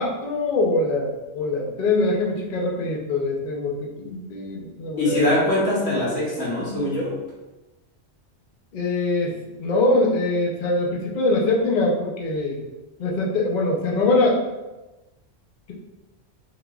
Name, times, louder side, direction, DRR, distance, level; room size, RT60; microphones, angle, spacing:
voice 1, 0.0-5.3 8.7-12.6 13.0-14.4, left 2 dB, 50° left, -3 dB, 0.6 m, -23 dB
voice 2, 5.0-7.1, left 1 dB, 80° left, -5 dB, 1.4 m, -22 dB
3.8 x 2.8 x 2.3 m, 1.1 s
omnidirectional pair, 1.3 m